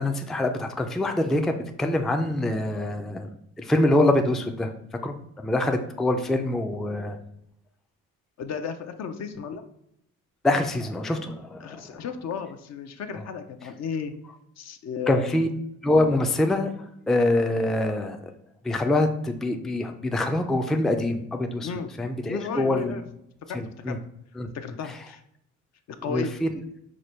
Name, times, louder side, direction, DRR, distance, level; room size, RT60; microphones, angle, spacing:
voice 1, 0.0-3.3 3.6-4.7 5.0-5.2 5.4-7.2 10.4-11.8 15.1-15.5 15.8-16.7 17.1-18.2 18.6-21.7 22.0-23.0 23.5-24.0 24.4-24.5 26.1-26.5, left 1 dB, ahead, 5 dB, 0.3 m, -24 dB
voice 2, 8.4-9.6 11.6-14.1 14.6-15.4 21.6-21.9 22.3-23.0 23.5-23.6 23.9-24.0 24.5-25.2 25.9-26.3, left 6 dB, 60° left, 8 dB, 0.6 m, -33 dB
4.9 x 2.1 x 4.2 m, 0.76 s
cardioid pair, 90°, 30 cm